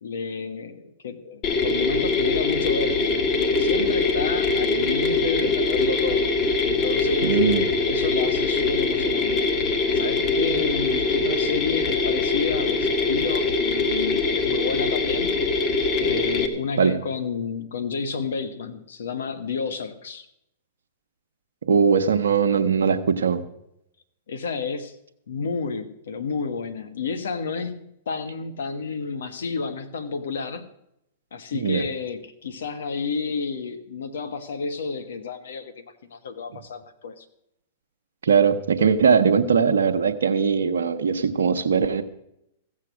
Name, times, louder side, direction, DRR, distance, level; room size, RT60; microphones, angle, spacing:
voice 1, 0.0-6.3 6.6-7.4 7.9-9.5 9.9-15.3 16.0-20.3 24.3-25.0 25.3-30.6 31.3-37.2, left 5 dB, 75° left, 10 dB, 1.3 m, -30 dB
Mechanisms, 1.4-16.5, left 3 dB, 35° left, 1.6 m, -23 dB
voice 2, 7.2-7.7 16.8-17.0 21.7-23.4 31.5-31.8 38.2-42.0, right 6 dB, 80° right, 6 dB, 0.9 m, -20 dB
15.5 x 7.5 x 6.2 m, 0.80 s
hypercardioid pair, 115°, 0 cm